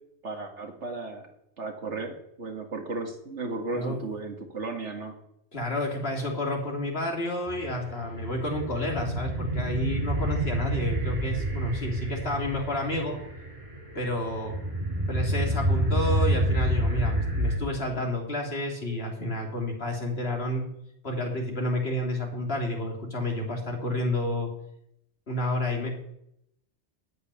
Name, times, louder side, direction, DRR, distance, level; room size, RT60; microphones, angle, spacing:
voice 1, 0.2-1.3 1.6-5.1, right 3 dB, 90° right, 4 dB, 2.4 m, -35 dB
voice 2, 5.5-13.2 13.9-14.6 15.1-20.6 21.0-24.5 25.3-25.9, left 1 dB, 60° left, 1 dB, 3.2 m, -30 dB
sound 1, 7.5-17.6, right 1 dB, 30° right, 4.2 m, -28 dB
9.5 x 9.0 x 9.7 m, 0.76 s
omnidirectional pair, 1.2 m